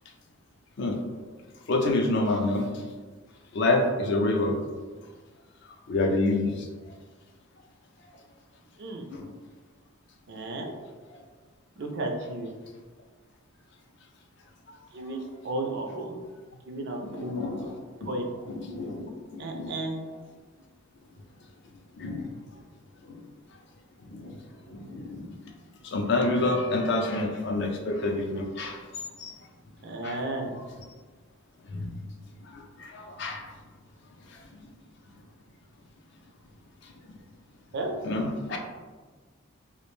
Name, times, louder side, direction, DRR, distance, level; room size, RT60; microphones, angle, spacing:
voice 1, 1.7-2.6 3.5-4.5 5.9-6.7 9.1-9.3 17.0-17.8 18.0-18.2 18.5-19.7 22.0-22.3 23.1-23.2 24.1-24.3 24.7-25.3 25.8-28.8 29.2-29.4 30.0-30.2 30.5-30.6 31.7-31.9 32.5-33.4 38.0-38.6, left 2 dB, 50° left, 3 dB, 0.3 m, -28 dB
voice 2, 10.3-10.7 11.8-12.5 14.9-16.2 16.7-17.7 18.1-18.5 19.4-20.0 29.8-30.5 37.7-37.9, right 2 dB, 50° right, 2 dB, 0.4 m, -33 dB
2.4 x 2.1 x 3.0 m, 1.4 s
head